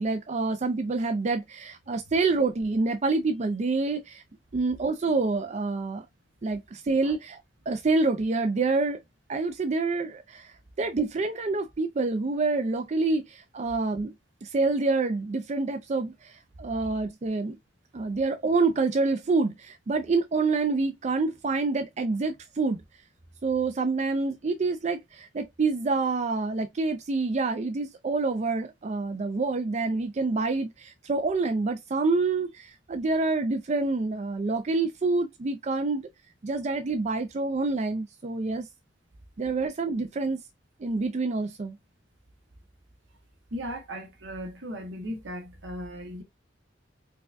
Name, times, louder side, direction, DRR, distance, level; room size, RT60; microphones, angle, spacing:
voice 1, 0.0-4.2 4.5-6.0 6.4-7.4 7.7-9.0 9.3-14.1 14.4-17.6 17.9-22.8 23.4-36.1 36.4-38.7 39.4-40.4 40.8-41.8, right 3 dB, 40° right, 0.4 m, -27 dB
voice 2, 43.5-46.2, equal, 75° right, 1.1 m, -37 dB
4.7 x 2.3 x 2.4 m
head